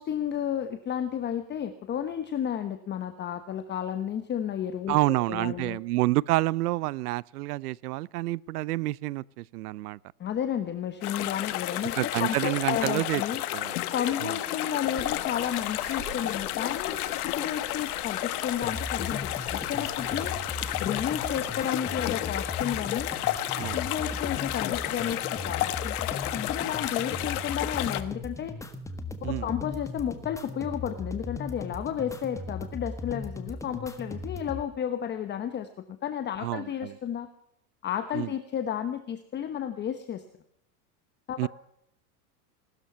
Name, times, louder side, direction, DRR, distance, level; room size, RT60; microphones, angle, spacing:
voice 1, 0.0-5.8 10.2-13.4 13.9-20.3 20.8-23.1 23.7-28.6 29.2-37.3 37.8-40.2 41.3-41.5, left 9 dB, 25° left, 1.0 m, -32 dB
voice 2, 4.9-10.0 12.0-13.2 13.5-13.8 14.2-14.4 23.6-23.8 29.2-29.5 36.4-36.9 38.1-38.3 41.4-41.5, right 18 dB, 85° right, 0.7 m, -28 dB
sound 1, 11.0-28.0, left 14 dB, 75° left, 1.4 m, -31 dB
sound 2, 15.0-21.5, right 6 dB, 30° right, 5.9 m, -48 dB
sound 3, 18.6-34.6, left 3 dB, 5° left, 1.4 m, -38 dB
19.0 x 13.0 x 5.7 m
supercardioid pair, 135°, 45 cm